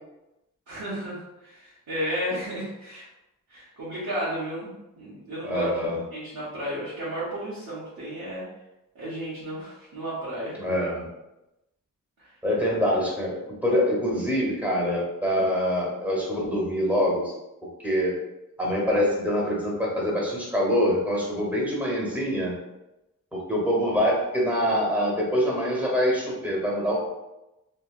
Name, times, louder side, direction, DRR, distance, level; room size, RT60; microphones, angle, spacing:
voice 1, 0.7-3.1 3.5-5.7 6.1-8.4 8.9-10.6, equal, 85° right, -11 dB, 1.0 m, -33 dB
voice 2, 5.4-6.0 10.6-11.1 12.4-17.3 17.8-18.1 18.6-22.5 23.3-27.1, equal, 5° right, -4 dB, 1.1 m, -25 dB
3.1 x 2.7 x 2.4 m, 0.94 s
wide cardioid pair, 65°, 35 cm